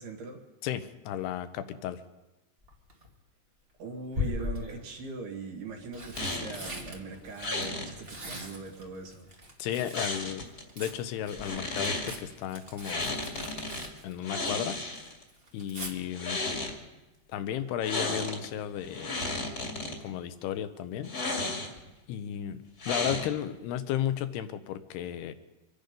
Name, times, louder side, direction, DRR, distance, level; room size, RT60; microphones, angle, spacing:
voice 1, 0.0-0.4 3.8-9.3, right 4 dB, 75° right, 2 dB, 3.9 m, -41 dB
voice 2, 0.6-2.0 9.6-10.5 10.8-13.2 14.0-14.8 15.5-16.4 17.3-19.3 20.0-21.1 22.1-25.3, left 10 dB, 80° left, 11 dB, 2.8 m, -34 dB
Tearing, 2.6-3.1 4.1-4.9 5.6-10.2 10.4-14.7 15.0-15.9 17.8-18.1 18.4-18.5, left 2 dB, 35° right, 0.8 m, -40 dB
sound 1, 6.2-6.7 7.4-7.9 9.9-10.6 11.3-12.1 12.8-13.9 14.2-15.2 16.0-16.8 17.8-18.5 18.8-20.0 21.0-21.9 22.8-23.5, left 2 dB, 30° left, 1.8 m, -33 dB
25.0 x 10.5 x 5.2 m, 1.0 s
omnidirectional pair, 4.7 m